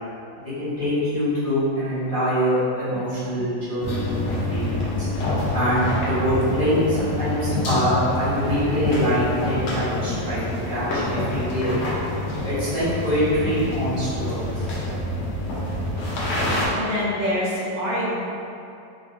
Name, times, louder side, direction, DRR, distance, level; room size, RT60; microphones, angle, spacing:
voice 1, 0.6-5.1 5.5-11.8 12.4-14.5, equal, 25° left, -15 dB, 1.0 m, -24 dB
sound 1, 3.8-16.7, left 1 dB, 80° left, 0.7 m, -27 dB
voice 2, 16.8-18.1, left 1 dB, 80° right, -7 dB, 1.5 m, -25 dB
4.0 x 2.4 x 2.5 m, 2.6 s
omnidirectional pair, 2.1 m